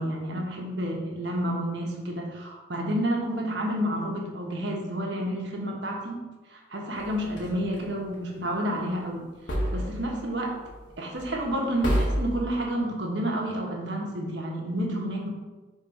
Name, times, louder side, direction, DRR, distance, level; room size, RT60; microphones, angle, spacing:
voice 1, 0.0-6.2 6.5-9.3 9.7-10.5 11.0-15.3, equal, 75° right, 0 dB, 1.2 m, -30 dB
sound 1, 7.0-7.8 9.5-10.3 10.6-10.9 11.1-11.5 11.8-12.4, equal, 85° left, 1.7 m, -29 dB
5.3 x 3.7 x 5.3 m, 1.2 s
head